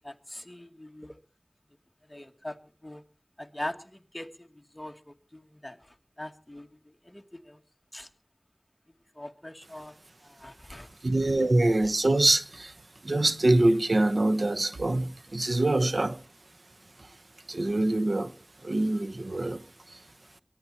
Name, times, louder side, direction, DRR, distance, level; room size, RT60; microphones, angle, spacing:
voice 1, 0.0-1.2 2.1-2.6 2.8-3.0 3.4-7.6 7.9-8.1 9.2-10.0 10.2-10.9, left 1 dB, 20° left, 2.1 m, -42 dB
voice 2, 11.0-12.7 13.0-16.2 17.5-18.3 18.6-19.6 19.9-20.0, right 2 dB, 85° right, 1.0 m, -24 dB
23.5 x 11.5 x 4.3 m
wide cardioid pair, 45°, 0 cm